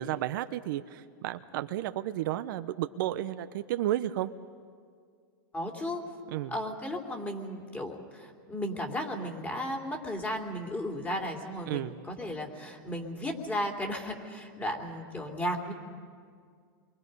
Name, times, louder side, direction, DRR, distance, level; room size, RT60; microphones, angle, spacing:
voice 1, 0.0-4.3 6.3-6.5 11.7-12.0, right 13 dB, 65° right, 11 dB, 0.8 m, -32 dB
voice 2, 5.5-6.0 6.5-15.7, equal, 15° left, 2 dB, 2.9 m, -35 dB
28.5 x 23.5 x 5.4 m, 2.1 s
hypercardioid pair, 125°, 12 cm